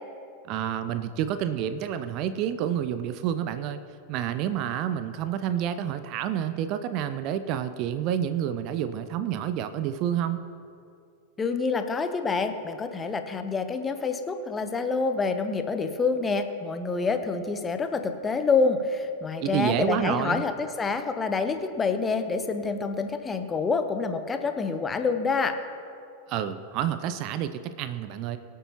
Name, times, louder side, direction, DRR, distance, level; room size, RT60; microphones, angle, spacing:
voice 1, 0.5-3.8 4.1-10.4 19.4-20.4 26.3-28.4, right 10 dB, 40° right, 11 dB, 0.5 m, -29 dB
voice 2, 11.4-25.6, left 4 dB, 15° left, 8 dB, 0.9 m, -27 dB
23.5 x 8.3 x 3.0 m, 2.5 s
figure-of-eight pair, 90°, 0 cm